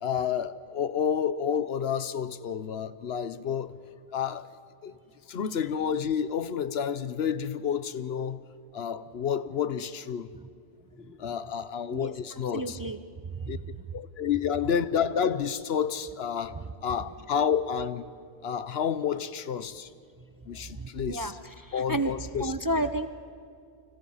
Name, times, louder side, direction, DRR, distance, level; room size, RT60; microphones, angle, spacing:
voice 1, 0.0-3.7 4.1-4.5 4.8-4.9 5.3-8.4 8.7-10.3 11.1-12.8 13.5-13.6 13.9-18.1 18.4-19.9 20.5-21.3 21.7-22.8, left 7 dB, 75° left, 1.0 m, -30 dB
voice 2, 12.5-13.0 13.3-13.8 20.8-22.1 22.4-23.1, right 1 dB, 25° right, 0.6 m, -31 dB
29.5 x 25.5 x 5.6 m
omnidirectional pair, 1.1 m